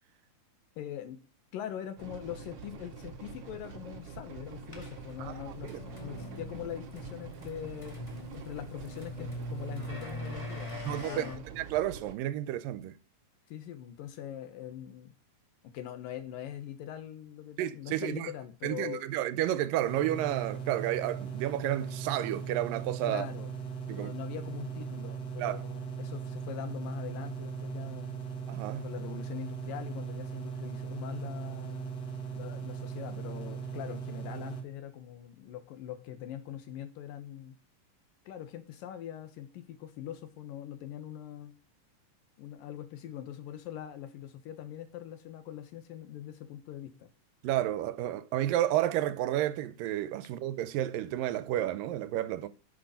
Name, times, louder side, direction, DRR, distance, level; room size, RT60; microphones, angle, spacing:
voice 1, 0.8-1.2 1.5-8.0 8.3-11.4 13.5-15.1 15.7-19.0 23.0-23.5 23.9-28.2 28.8-31.9 32.4-37.6 38.3-41.6 42.4-47.1, left 11 dB, 85° left, 2.9 m, -42 dB
sound 1, 2.0-12.1, right 5 dB, 60° right, 1.8 m, -46 dB
sound 2, 4.7-11.4, equal, 15° left, 1.5 m, -42 dB
voice 2, 5.2-5.8 10.8-11.3 11.5-13.0 17.6-18.3 18.6-23.3 23.9-24.1 25.4-25.6 28.5-28.9 47.4-52.5, right 13 dB, 85° right, 2.4 m, -31 dB
sound 3, 19.8-34.6, right 6 dB, 40° left, 1.8 m, -39 dB
11.5 x 6.8 x 5.3 m
omnidirectional pair, 3.9 m